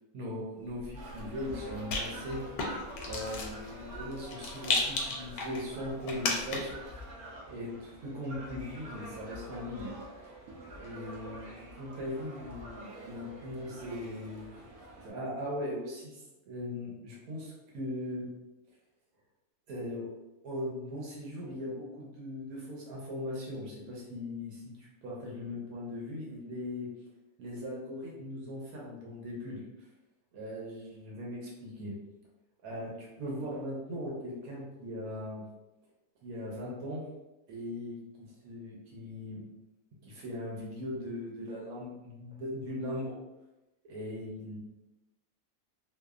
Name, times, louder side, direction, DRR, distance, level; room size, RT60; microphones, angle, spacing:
voice 1, 0.1-2.7 3.0-6.7 7.5-9.9 10.8-14.4 15.0-18.3 19.7-20.1 20.4-26.9 27.4-29.6 30.3-31.9 32.6-35.4 36.2-37.0 37.5-39.4 40.0-43.2 43.8-44.6, left 1 dB, 90° right, -4 dB, 1.2 m, -39 dB
Rattle, 0.7-6.8, left 3 dB, 85° left, 1.1 m, -36 dB
sound 1, 0.9-15.1, equal, 60° right, 0.9 m, -46 dB
3.2 x 2.0 x 2.3 m, 1.0 s
omnidirectional pair, 1.5 m